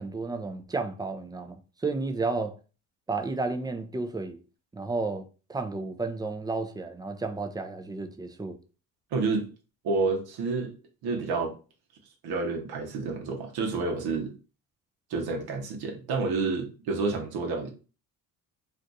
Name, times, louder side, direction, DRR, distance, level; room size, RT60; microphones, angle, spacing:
voice 1, 0.0-2.5 3.1-4.4 4.7-8.6, right 3 dB, 10° right, 0.3 m, -32 dB
voice 2, 9.1-9.5 9.8-10.7 11.0-11.5 12.2-14.3 15.1-17.7, right 4 dB, 80° right, 0.8 m, -29 dB
2.5 x 2.3 x 3.9 m
cardioid pair, 95°, 38 cm